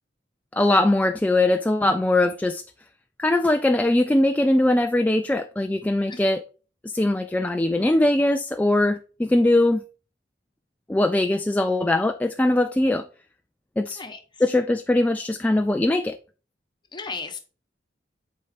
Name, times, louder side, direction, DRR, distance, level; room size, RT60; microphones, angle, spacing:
voice 1, 0.5-2.6 3.2-6.4 6.8-9.8 10.9-13.0 13.8-14.0 14.4-16.2, left 1 dB, 10° left, 0.3 m, -21 dB
voice 2, 16.9-17.4, left 4 dB, 25° left, 1.1 m, -35 dB
7.7 x 4.2 x 3.5 m
head